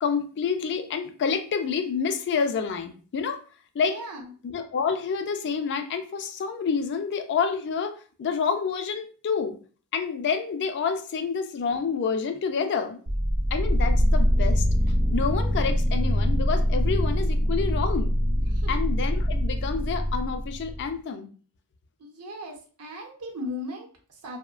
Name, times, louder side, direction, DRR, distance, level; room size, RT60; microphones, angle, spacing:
voice 1, 0.0-3.4 3.7-4.0 4.4-9.6 9.9-13.0 13.5-14.7 15.1-18.2 18.7-21.3, left 6 dB, 50° left, 8 dB, 0.3 m, -28 dB
voice 2, 3.9-4.3 18.5-18.7 22.0-24.4, left 1 dB, 80° right, 1 dB, 0.7 m, -37 dB
sound 1, 13.1-20.9, equal, 40° right, 0.5 m, -24 dB
2.8 x 2.1 x 2.4 m, 0.40 s
head